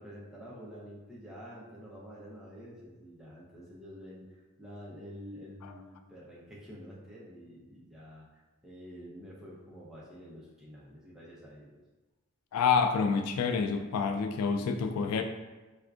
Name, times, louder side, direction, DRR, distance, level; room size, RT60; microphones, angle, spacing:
voice 1, 0.0-11.7, equal, ahead, -7 dB, 0.6 m, -48 dB
voice 2, 12.5-15.2, left 5 dB, 85° left, 11 dB, 0.3 m, -28 dB
4.3 x 2.4 x 2.4 m, 1.2 s
head